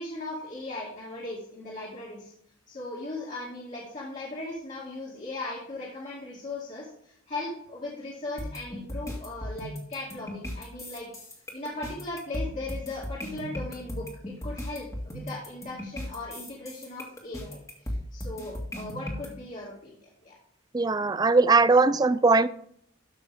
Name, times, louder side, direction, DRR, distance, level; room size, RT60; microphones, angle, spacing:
voice 1, 0.0-2.3 2.7-11.1 11.5-20.4, left 2 dB, 35° left, -6 dB, 2.3 m, -38 dB
sound 1, 8.4-19.3, left 1 dB, 15° left, 1.9 m, -36 dB
voice 2, 20.7-22.5, right 3 dB, 20° right, 15 dB, 0.3 m, -20 dB
13.0 x 5.8 x 3.6 m, 0.69 s
head